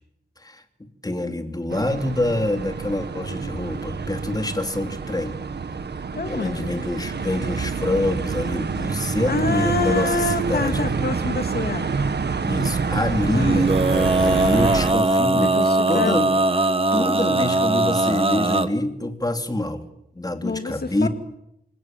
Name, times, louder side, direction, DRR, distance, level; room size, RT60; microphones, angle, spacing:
voice 1, 0.4-5.4 6.3-10.9 12.4-15.6 15.9-16.3 16.9-19.8 20.1-21.1, left 1 dB, 20° left, 6 dB, 3.0 m, -26 dB
sound 1, 1.7-14.9, right 5 dB, 90° right, 1.8 m, -27 dB
voice 2, 6.1-6.8 9.0-11.9 13.3-13.7 15.4-16.3 20.4-21.1, left 3 dB, 70° left, 7 dB, 3.0 m, -27 dB
Male singing, 13.3-18.7, right 2 dB, 35° right, 1.5 m, -20 dB
27.5 x 19.0 x 9.1 m, 0.82 s
wide cardioid pair, 95°, 17 cm